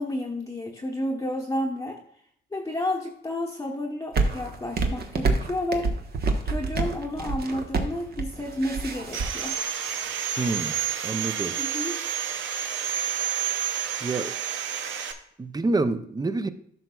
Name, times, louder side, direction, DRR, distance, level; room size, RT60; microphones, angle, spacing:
voice 1, 0.0-2.0 2.5-5.9 6.4-9.6 11.6-11.9, left 1 dB, 15° left, -2 dB, 0.9 m, -31 dB
sound 1, 4.1-9.3, right 3 dB, 50° right, 1.0 m, -27 dB
Sawing, 9.1-15.1, right 9 dB, 75° right, 0.7 m, -30 dB
voice 2, 10.4-10.8 11.0-11.6 14.0-14.4 15.4-16.5, right 3 dB, 20° right, 12 dB, 0.5 m, -27 dB
12.0 x 5.8 x 2.3 m, 0.69 s
cardioid pair, 90°, 20 cm